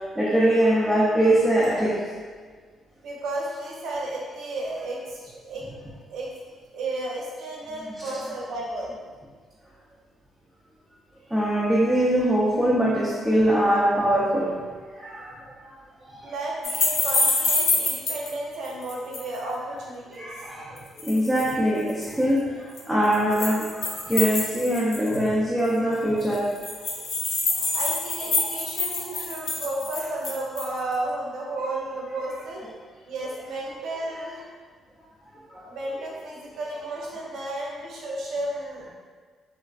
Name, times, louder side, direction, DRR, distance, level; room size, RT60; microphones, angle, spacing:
voice 1, 0.2-2.0 11.3-14.5 14.9-15.3 16.2-16.3 20.2-22.4 22.9-26.5 28.4-28.5 29.1-29.2 35.5-35.6, right 1 dB, 5° right, -7 dB, 0.4 m, -22 dB
voice 2, 3.0-5.7 6.1-6.3 6.7-8.9 16.2-20.3 27.7-32.6 33.1-34.5 35.7-38.9, right 2 dB, 80° right, -3 dB, 0.5 m, -33 dB
sound 1, 16.6-18.3 18.6-19.4 20.8-21.5 21.9-22.1 22.8-25.3 25.6-25.7 25.9-26.0 26.2-30.8, left 3 dB, 70° left, 0.5 m, -26 dB
2.4 x 2.2 x 2.3 m, 1.6 s
cardioid pair, 90°, 0 cm